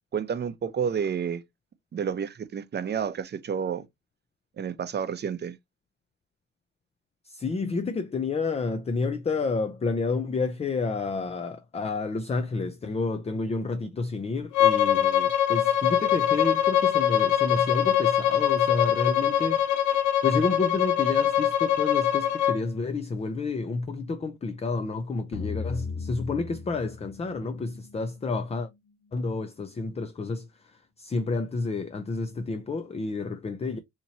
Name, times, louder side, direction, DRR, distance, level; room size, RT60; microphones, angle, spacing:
voice 1, 0.1-1.4 1.9-3.9 4.6-5.6, right 7 dB, 35° right, 0.6 m, -30 dB
voice 2, 7.2-20.0 20.2-28.7 29.1-33.8, left 3 dB, 20° left, 0.4 m, -30 dB
Bowed string instrument, 14.5-22.6, left 10 dB, 80° left, 0.8 m, -23 dB
sound 1, 25.3-28.6, left 4 dB, 55° left, 1.6 m, -36 dB
4.2 x 2.9 x 2.7 m
cardioid pair, 90°, 30 cm